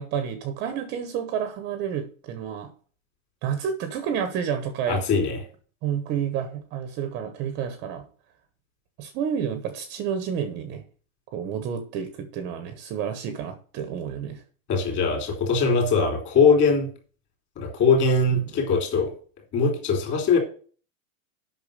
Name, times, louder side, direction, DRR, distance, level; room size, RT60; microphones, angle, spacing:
voice 1, 0.0-2.7 3.4-5.0 5.8-8.1 9.0-10.8 11.3-14.4 18.3-18.4, right 8 dB, 25° right, 0.9 m, -30 dB
voice 2, 4.9-5.4 14.7-16.9 17.6-19.1 19.5-20.4, left 4 dB, 25° left, 3.2 m, -21 dB
8.6 x 6.0 x 6.5 m
supercardioid pair, 165°, 41 cm